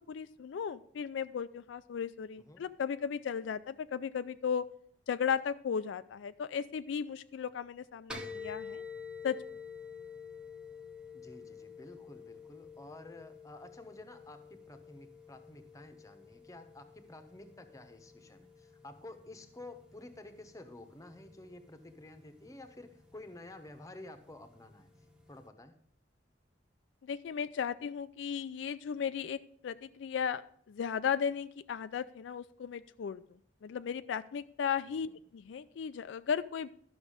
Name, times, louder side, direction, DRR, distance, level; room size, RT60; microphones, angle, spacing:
voice 1, 0.1-4.6 5.1-8.8 9.2-9.4 27.0-29.4 29.6-33.2 33.6-36.7, left 7 dB, 85° left, 13 dB, 0.4 m, -35 dB
sound 1, 8.1-25.4, left 5 dB, 5° right, 1.0 m, -50 dB
voice 2, 11.1-24.9 25.3-25.8 34.9-35.2, left 2 dB, 20° left, 8 dB, 0.9 m, -51 dB
12.0 x 6.2 x 4.9 m, 0.63 s
head